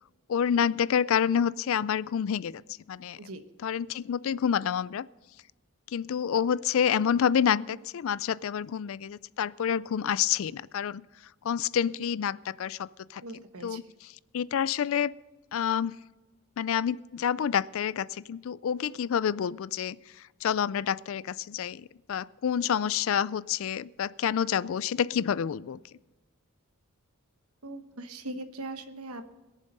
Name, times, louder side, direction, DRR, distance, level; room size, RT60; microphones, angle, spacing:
voice 1, 0.3-2.6 2.9-3.2 3.6-5.1 5.9-11.0 11.4-13.2 13.6-13.8 14.3-15.1 15.5-15.9 16.6-20.0 20.4-25.8, left 8 dB, 65° left, 20 dB, 0.3 m, -28 dB
voice 2, 13.2-13.8 27.6-29.3, right 2 dB, 85° right, 9 dB, 1.1 m, -40 dB
21.5 x 7.2 x 5.4 m, 1.2 s
head